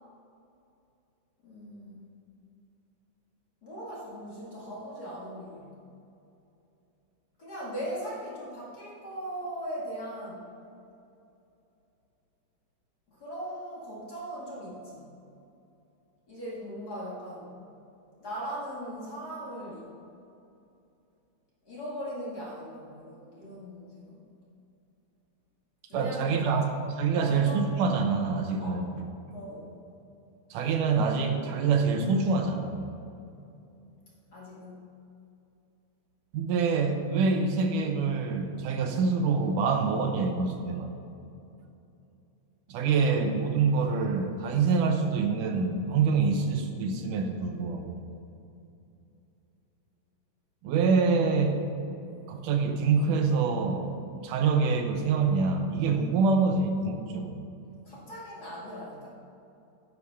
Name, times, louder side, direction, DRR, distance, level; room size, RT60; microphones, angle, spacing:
voice 1, 1.4-2.1 3.6-5.7 7.4-10.5 13.1-15.1 16.3-17.6 18.2-19.9 21.7-24.2 25.9-26.6 27.2-27.8 28.6-28.8 29.3-29.7 34.3-34.8 42.9-43.4 57.8-59.1, equal, 35° left, -6 dB, 2.2 m, -39 dB
voice 2, 25.9-26.7 27.0-28.9 30.5-32.8 36.3-40.9 42.7-48.0 50.6-51.7 52.3-53.9 54.2-57.4, right 4 dB, 85° right, 5 dB, 2.4 m, -26 dB
9.6 x 7.5 x 5.8 m, 2.7 s
omnidirectional pair, 3.6 m